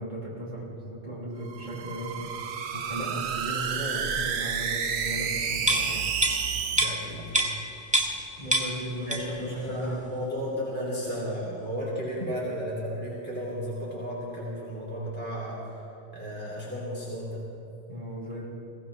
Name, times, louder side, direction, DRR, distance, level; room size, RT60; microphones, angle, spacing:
voice 1, 0.0-2.3 2.7-6.1 8.4-10.1 17.9-18.5, right 1 dB, 40° left, -5 dB, 4.2 m, -36 dB
sound 1, 1.4-6.8, right 7 dB, 75° right, 1.0 m, -30 dB
sound 2, 5.6-8.3 8.5-9.5 9.8-9.9, right 1 dB, 5° right, 1.2 m, -27 dB
voice 2, 6.7-7.3 9.1-15.6 16.1-17.4, equal, 10° left, -6 dB, 2.9 m, -34 dB
21.5 x 16.5 x 3.3 m, 2.8 s
omnidirectional pair, 1.1 m